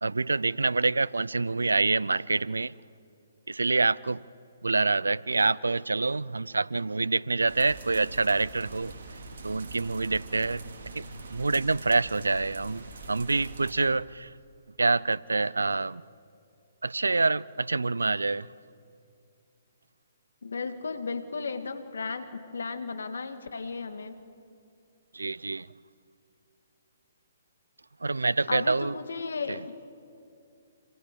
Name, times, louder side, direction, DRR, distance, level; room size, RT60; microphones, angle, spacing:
voice 1, 0.0-2.7 3.5-4.2 4.6-8.9 9.4-10.6 11.0-11.1 11.3-14.3 14.8-16.0 16.8-18.5 25.1-25.7 28.0-29.0 29.5-29.6, right 3 dB, 85° right, 0.5 m, -26 dB
sound 1, 7.5-13.7, right 3 dB, 65° right, 4.1 m, -43 dB
voice 2, 20.4-24.2 28.5-29.6, left 4 dB, 75° left, 2.1 m, -34 dB
27.5 x 26.0 x 7.0 m
figure-of-eight pair, 130°, 0 cm